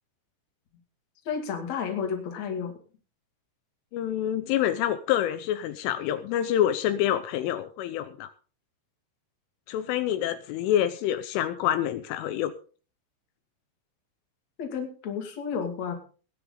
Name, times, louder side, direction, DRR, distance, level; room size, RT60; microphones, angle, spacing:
voice 1, 1.2-2.7 14.6-15.9, left 6 dB, 40° left, 4 dB, 3.0 m, -31 dB
voice 2, 3.9-8.3 9.7-12.5, left 11 dB, 80° left, 10 dB, 3.3 m, -27 dB
20.0 x 9.9 x 3.9 m, 0.37 s
omnidirectional pair, 5.7 m